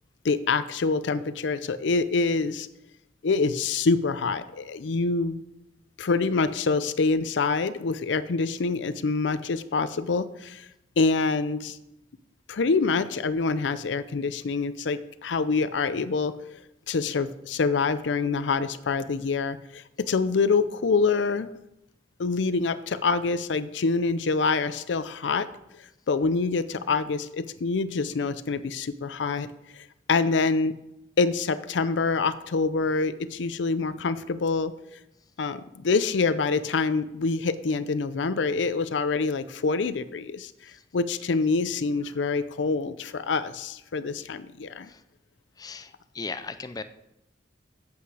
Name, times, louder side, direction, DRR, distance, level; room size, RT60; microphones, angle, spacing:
voice 1, 0.2-2.7 3.2-5.4 6.0-10.7 11.0-11.8 12.5-16.3 16.9-21.5 22.2-25.5 26.1-29.5 29.7-30.8 31.2-34.7 35.4-40.5 40.9-44.9, left 4 dB, 90° left, 13 dB, 0.5 m, -26 dB
voice 2, 45.6-46.8, left 4 dB, 20° left, 11 dB, 0.4 m, -37 dB
8.2 x 8.0 x 4.8 m, 0.85 s
head